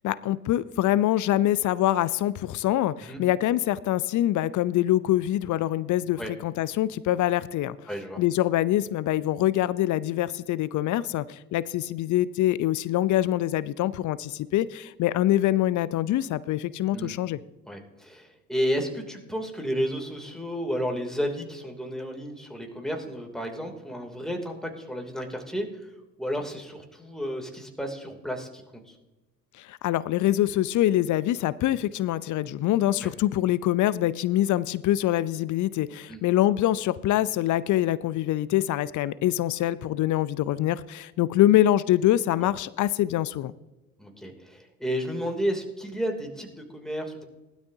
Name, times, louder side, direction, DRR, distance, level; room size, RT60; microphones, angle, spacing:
voice 1, 0.0-7.8 8.2-17.4 29.6-43.5, left 13 dB, 45° left, 18 dB, 0.7 m, -24 dB
voice 2, 7.9-8.2 16.9-17.2 17.7-25.9 26.2-29.0 33.0-33.1 36.1-36.2 42.4-42.5 44.0-47.2, equal, ahead, 2 dB, 3.0 m, -32 dB
20.0 x 12.5 x 2.8 m, 1.1 s
figure-of-eight pair, 55°, 41 cm